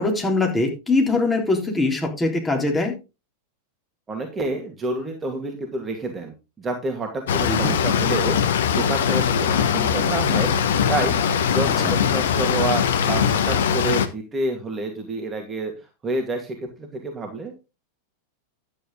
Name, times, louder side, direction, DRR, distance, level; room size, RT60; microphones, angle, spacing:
voice 1, 0.0-3.0 7.5-7.8, left 2 dB, 10° left, 1 dB, 3.7 m, -22 dB
voice 2, 4.1-10.6 10.9-11.2 11.5-15.7 16.0-17.6, right 2 dB, 20° right, 3 dB, 2.3 m, -28 dB
sound 1, 7.3-14.1, left 8 dB, 60° left, 1.1 m, -21 dB
11.5 x 8.8 x 3.9 m, 0.28 s
figure-of-eight pair, 90°, 0 cm